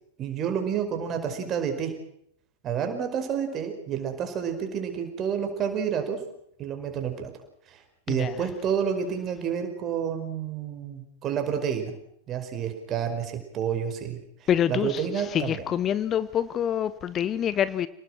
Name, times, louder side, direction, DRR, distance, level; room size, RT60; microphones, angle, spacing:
voice 1, 0.2-1.9 2.6-6.2 6.6-7.3 7.7-7.8 8.1-11.9 12.3-15.6, right 8 dB, 30° right, 5 dB, 5.2 m, -29 dB
voice 2, 14.5-17.9, left 9 dB, 30° left, 16 dB, 0.8 m, -26 dB
29.0 x 19.0 x 6.3 m, 0.71 s
figure-of-eight pair, 90°, 0 cm